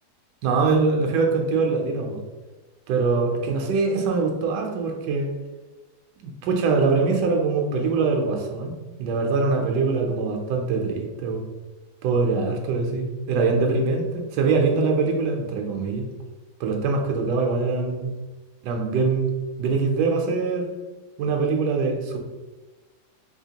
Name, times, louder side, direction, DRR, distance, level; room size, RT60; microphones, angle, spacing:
voice 1, 0.4-2.2 2.9-5.3 6.2-11.4 12.0-16.1 16.6-18.1 18.6-19.3 19.6-20.7 21.2-22.2, right 4 dB, 85° right, 2 dB, 1.2 m, -23 dB
3.3 x 2.8 x 2.8 m, 1.2 s
omnidirectional pair, 1.8 m